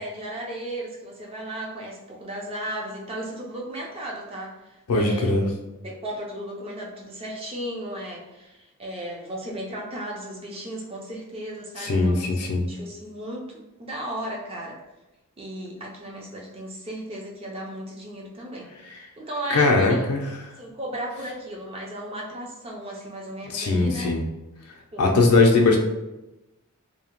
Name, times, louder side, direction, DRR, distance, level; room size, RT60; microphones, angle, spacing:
voice 1, 0.0-4.5 4.9-5.5 5.8-14.8 15.4-18.7 19.2-20.1 20.6-24.2 24.9-25.1, right 1 dB, 25° right, -2 dB, 0.4 m, -35 dB
voice 2, 4.9-5.5 11.8-12.6 19.5-20.2 23.5-24.2 25.0-25.8, left 3 dB, 90° left, 0 dB, 0.4 m, -20 dB
2.7 x 2.0 x 2.9 m, 1.0 s
head